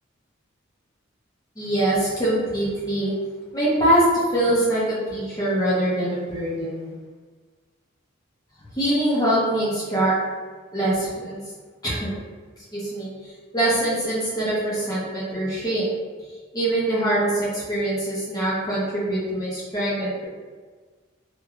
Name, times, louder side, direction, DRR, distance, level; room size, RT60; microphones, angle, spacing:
voice 1, 1.6-3.1 3.5-6.9 8.7-10.1 10.7-11.4 11.8-12.1 12.7-15.9 16.5-20.3, right 1 dB, 20° left, -8 dB, 0.9 m, -23 dB
3.0 x 2.8 x 2.4 m, 1.5 s
head